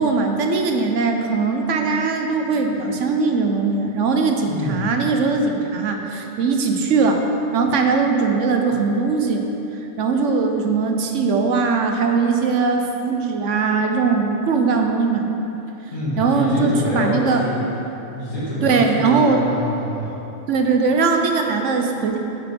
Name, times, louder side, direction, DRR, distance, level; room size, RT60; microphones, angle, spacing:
voice 1, 0.0-7.2 7.5-9.5 10.0-15.3 16.2-17.5 18.6-19.4 20.5-22.2, right 4 dB, 65° right, 3 dB, 1.1 m, -20 dB
voice 2, 4.4-4.9 15.9-17.5 18.1-20.2, left 1 dB, 70° left, -10 dB, 2.6 m, -26 dB
9.2 x 5.2 x 5.3 m, 3.0 s
omnidirectional pair, 1.4 m